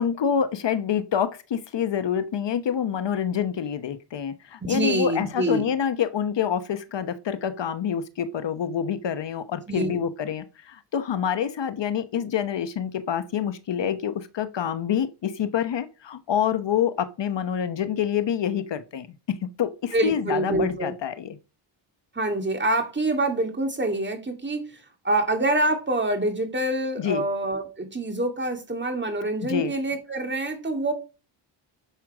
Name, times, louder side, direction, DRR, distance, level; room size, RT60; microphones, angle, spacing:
voice 1, 0.0-19.1 19.6-21.4 27.0-27.2 29.4-29.7, left 8 dB, 60° left, 1.0 m, -27 dB
voice 2, 4.6-5.7 9.7-10.0 19.9-20.9 22.2-24.7 25.0-30.9, right 1 dB, 20° right, 2.6 m, -26 dB
10.0 x 6.3 x 6.1 m
wide cardioid pair, 130°, 50 cm